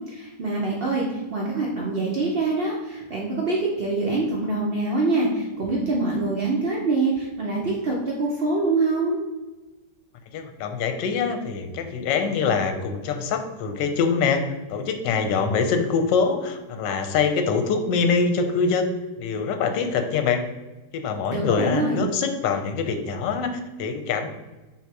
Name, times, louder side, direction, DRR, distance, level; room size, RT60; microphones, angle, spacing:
voice 1, 0.1-9.2 21.3-22.1, right 3 dB, 90° right, -3 dB, 0.5 m, -25 dB
voice 2, 10.3-20.4 20.9-24.3, left 5 dB, 80° left, 7 dB, 1.3 m, -24 dB
3.9 x 2.8 x 4.5 m, 1.1 s
omnidirectional pair, 1.9 m